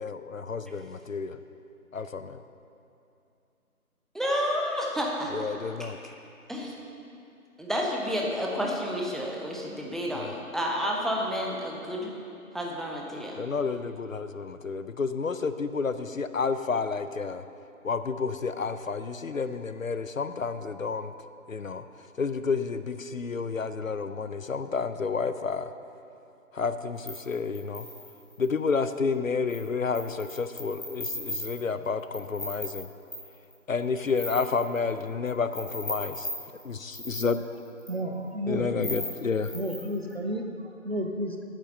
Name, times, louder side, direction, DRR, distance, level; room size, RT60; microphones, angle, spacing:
voice 1, 0.0-1.4 1.9-2.4 5.3-6.0 10.2-10.3 13.4-17.4 17.8-21.1 21.5-21.8 22.2-25.7 26.5-27.9 28.4-32.9 33.7-36.3 36.6-37.4 38.5-39.5, left 5 dB, 65° left, 11 dB, 0.6 m, -30 dB
voice 2, 4.1-5.5 5.8-5.9 6.5-6.7 7.6-12.1 12.5-13.4, equal, ahead, -1 dB, 0.6 m, -30 dB
sound 1, 27.1-28.4 29.5-29.7 29.9-33.5 33.8-35.3 35.5-37.9 38.8-40.1, left 1 dB, 20° left, 2.4 m, -37 dB
voice 3, 37.9-38.7 38.9-39.1 39.5-40.4 40.8-41.4, equal, 45° right, 4 dB, 0.8 m, -31 dB
8.9 x 8.4 x 6.4 m, 2.7 s
figure-of-eight pair, 175°, 43 cm